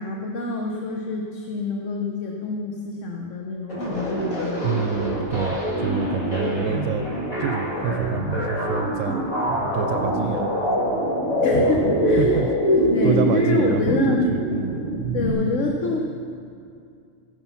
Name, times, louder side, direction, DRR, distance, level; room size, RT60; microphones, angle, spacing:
voice 1, 0.0-4.7 6.4-6.6 11.4-12.4 12.9-14.2 15.1-16.0, left 3 dB, 65° left, 1 dB, 1.3 m, -27 dB
sound 1, 3.7-15.3, equal, 85° left, 2.6 m, -24 dB
voice 2, 4.6-7.0 7.4-9.2 9.7-10.5 12.2-14.8, right 8 dB, 75° right, 7 dB, 0.9 m, -28 dB
14.5 x 9.8 x 5.8 m, 2.4 s
omnidirectional pair, 1.4 m